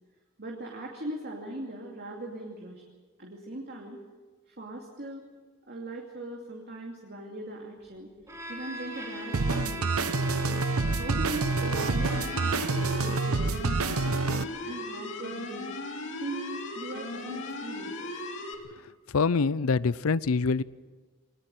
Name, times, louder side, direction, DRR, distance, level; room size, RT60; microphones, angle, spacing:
voice 1, 0.4-2.8 3.2-4.0 4.5-5.2 5.7-8.1 8.5-10.3 10.9-15.7 16.2-18.1, right 1 dB, 50° right, 0 dB, 2.6 m, -40 dB
Bowed string instrument, 8.3-12.9, left 1 dB, 15° right, 4.8 m, -39 dB
sound 1, 9.3-14.4, right 3 dB, 80° right, 0.8 m, -27 dB
sound 2, 11.8-18.5, left 2 dB, 60° left, 2.8 m, -37 dB
voice 2, 19.1-20.6, left 4 dB, 75° left, 19 dB, 0.6 m, -25 dB
22.0 x 19.5 x 7.8 m, 1.3 s
head